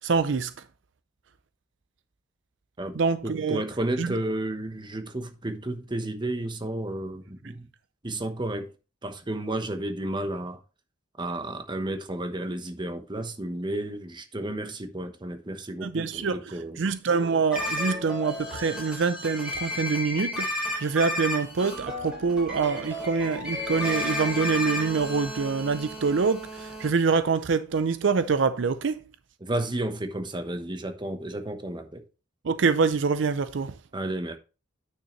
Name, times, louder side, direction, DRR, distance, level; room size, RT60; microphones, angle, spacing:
voice 1, 0.0-0.5 3.0-3.6 4.0-4.1 15.8-16.4 16.8-29.0 32.4-33.7, right 5 dB, 65° right, 0.5 m, -25 dB
voice 2, 3.2-7.7 8.0-8.7 9.0-10.6 11.2-16.8 29.4-32.0 33.9-34.4, right 1 dB, 25° right, 1.0 m, -32 dB
sound 1, 17.5-26.9, left 1 dB, 5° right, 3.7 m, -33 dB
9.2 x 6.6 x 3.1 m
head